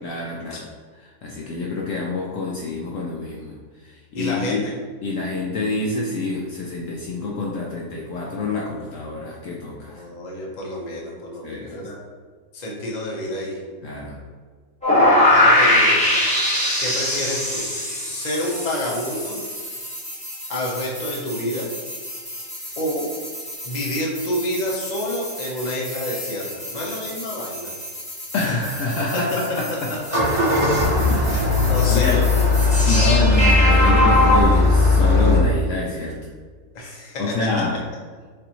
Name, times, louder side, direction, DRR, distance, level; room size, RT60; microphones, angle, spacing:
voice 1, 0.0-0.7 0.9-3.6 3.8-4.7 5.0-10.0 11.4-11.9 13.8-14.2 28.3-29.9 31.1-32.3 32.9-36.2 37.2-37.8, left 3 dB, 65° left, -2 dB, 0.8 m, -27 dB
voice 2, 4.1-4.7 9.9-12.0 12.5-13.6 15.3-16.0 16.8-17.7 18.1-19.4 20.5-21.7 22.8-23.1 23.6-27.7 30.3-30.4 31.3-32.5 32.8-33.0 36.7-37.2, left 1 dB, 35° left, -2 dB, 0.7 m, -28 dB
sound 1, 14.8-34.4, left 1 dB, 5° left, 1.1 m, -24 dB
Engine starting, 30.0-35.4, left 3 dB, 50° right, 1.6 m, -18 dB
6.6 x 2.5 x 2.9 m, 1.5 s
omnidirectional pair, 1.6 m